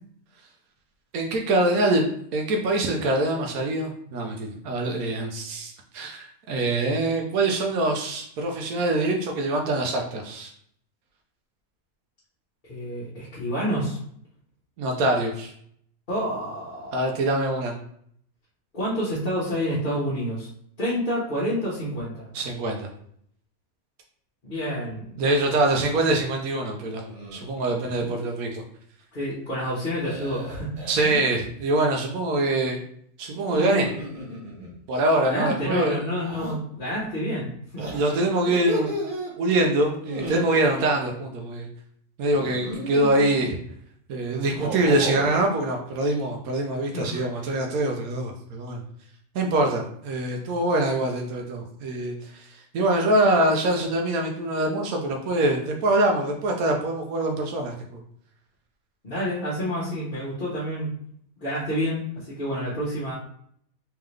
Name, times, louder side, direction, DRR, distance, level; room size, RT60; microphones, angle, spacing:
voice 1, 1.1-10.5 14.8-15.5 16.9-17.7 22.3-22.9 25.2-28.6 30.9-32.8 33.2-33.9 34.9-36.0 37.9-38.9 39.4-41.7 42.2-43.6 44.1-48.8 49.3-52.5 52.7-58.0, right 2 dB, 85° right, 2 dB, 1.1 m, -24 dB
voice 2, 12.7-14.0 16.1-17.0 18.7-20.5 20.8-22.3 24.4-25.1 29.1-30.9 35.3-37.8 46.9-47.2 59.0-60.9 61.4-63.2, equal, 40° left, -9 dB, 1.2 m, -28 dB
sound 1, 27.1-27.4 27.8-28.3 30.0-31.3 33.3-34.7 36.2-36.6 37.8-39.3 40.0-40.9 42.3-43.4 44.4-45.4, equal, 40° right, 1.1 m, -33 dB
3.6 x 3.4 x 3.2 m, 0.68 s
omnidirectional pair, 1.5 m